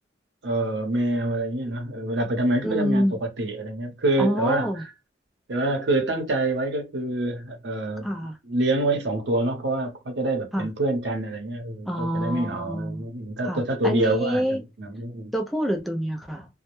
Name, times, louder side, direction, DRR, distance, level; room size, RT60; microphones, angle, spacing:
voice 1, 0.4-4.9 5.5-8.1 8.5-15.3, right 2 dB, 80° right, 0.8 m, -26 dB
voice 2, 2.6-3.2 4.2-4.8 8.0-8.4 10.5-10.7 11.9-13.1 13.4-14.6 15.3-16.5, equal, ahead, 0.4 m, -26 dB
2.1 x 2.0 x 2.9 m
head